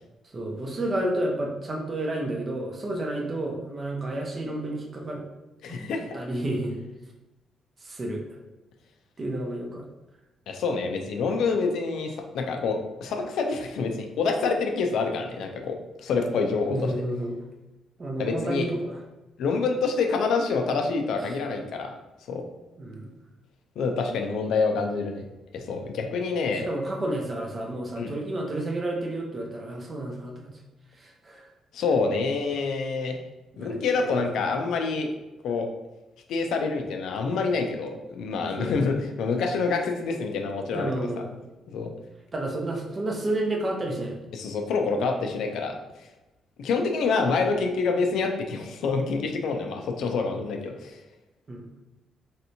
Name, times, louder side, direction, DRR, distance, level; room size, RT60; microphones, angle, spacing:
voice 1, 0.3-5.2 5.7-6.8 7.8-8.2 9.2-9.9 16.7-17.4 18.0-19.0 22.8-23.2 26.5-30.5 31.0-31.5 33.5-33.8 38.6-38.7 40.7-41.5 42.3-44.2 51.5-51.6, right 1 dB, 35° right, 1 dB, 0.7 m, -31 dB
voice 2, 5.6-6.2 10.5-16.9 18.2-18.7 19.4-21.9 22.3-22.4 23.8-25.2 25.5-26.7 28.0-28.1 31.7-33.2 33.6-35.1 35.4-35.7 36.3-41.1 41.7-41.9 44.3-46.1 46.6-51.0, left 4 dB, 75° left, 3 dB, 0.4 m, -27 dB
3.2 x 2.7 x 2.7 m, 1.0 s
cardioid pair, 90°, 0 cm